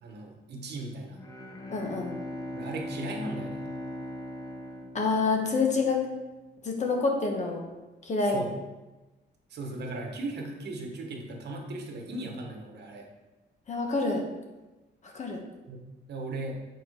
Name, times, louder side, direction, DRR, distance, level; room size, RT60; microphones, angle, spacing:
voice 1, 0.0-1.2 2.5-3.7 8.2-8.5 9.5-13.1 15.7-15.8 16.1-16.6, right 2 dB, 60° right, 2 dB, 1.3 m, -37 dB
Bowed string instrument, 1.1-6.0, left 1 dB, 20° left, 0.9 m, -39 dB
voice 2, 1.7-2.1 4.9-6.0 6.6-7.6 8.0-8.4 13.7-14.2 15.0-15.4, left 4 dB, 40° left, 2 dB, 1.2 m, -27 dB
8.9 x 4.6 x 4.9 m, 1.1 s
wide cardioid pair, 175°, 19 cm